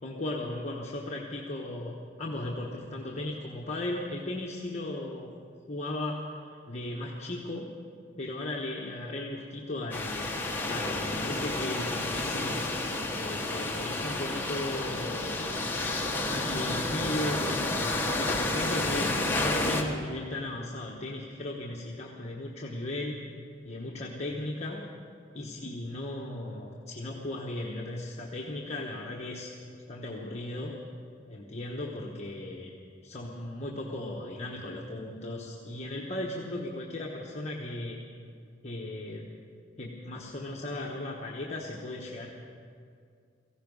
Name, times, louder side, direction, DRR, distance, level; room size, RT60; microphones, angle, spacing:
voice 1, 0.0-5.3 5.7-7.7 8.2-12.7 13.1-15.5 16.2-23.2 23.6-24.8 25.3-30.7 31.3-32.7 33.0-38.0 38.6-39.3 39.8-42.3, left 1 dB, 35° left, -3 dB, 1.2 m, -36 dB
sound 1, 9.9-19.8, left 2 dB, 10° left, 1.4 m, -30 dB
17.5 x 15.5 x 5.4 m, 2.3 s
head